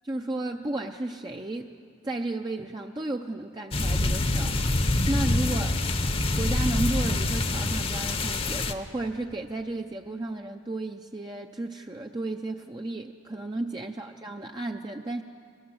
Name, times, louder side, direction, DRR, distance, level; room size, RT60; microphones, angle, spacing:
voice 1, 0.0-1.7 2.0-4.6 5.1-5.9 6.4-15.2, right 2 dB, 20° right, 3 dB, 0.5 m, -33 dB
sound 1, 3.7-8.7, left 2 dB, 30° left, 0.8 m, -26 dB
23.0 x 19.5 x 7.8 m, 2.3 s
head